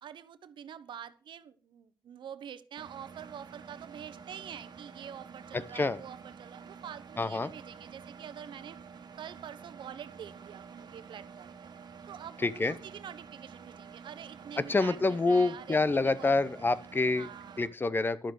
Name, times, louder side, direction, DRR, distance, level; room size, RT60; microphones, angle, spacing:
voice 1, 0.0-8.8 9.2-11.7 12.1-16.4 17.1-17.7, right 9 dB, 85° right, 13 dB, 1.0 m, -46 dB
Engine, 2.8-17.7, right 6 dB, 60° right, 1.6 m, -49 dB
voice 2, 5.5-6.0 7.2-7.5 12.4-12.8 14.6-17.3 17.6-18.3, left 3 dB, 25° left, 17 dB, 0.7 m, -27 dB
11.5 x 7.4 x 6.4 m, 0.40 s
cardioid pair, 105°, 8 cm